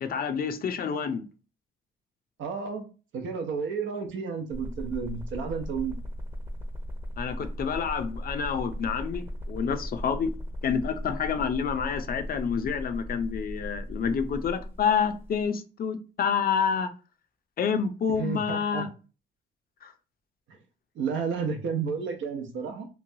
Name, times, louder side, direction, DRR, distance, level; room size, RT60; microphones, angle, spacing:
voice 1, 0.0-1.2 7.2-10.3 10.6-16.9 17.6-18.9 19.8-19.9, left 6 dB, 50° left, 0.5 m, -28 dB
voice 2, 2.4-2.8 3.1-6.0 18.2-18.8 20.5-20.6 21.0-22.9, right 6 dB, 75° right, 0.7 m, -31 dB
sound 1, 4.5-15.4, equal, 10° right, 0.7 m, -37 dB
3.0 x 2.2 x 2.7 m
cardioid pair, 90°, 20 cm